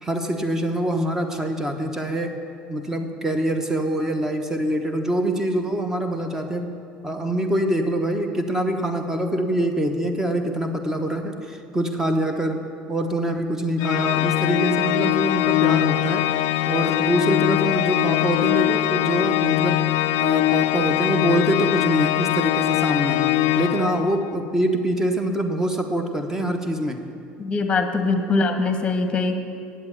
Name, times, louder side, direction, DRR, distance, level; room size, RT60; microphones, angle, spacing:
voice 1, 0.0-2.4 2.7-6.7 7.0-16.3 16.7-19.8 20.2-23.3 23.6-27.0, right 1 dB, 10° right, 6 dB, 1.0 m, -24 dB
Organ, 13.8-24.4, left 15 dB, 75° left, 0.3 m, -22 dB
voice 2, 27.4-29.4, left 3 dB, 25° left, 7 dB, 1.1 m, -22 dB
8.7 x 7.8 x 8.5 m, 2.6 s
cardioid pair, 130°, 4 cm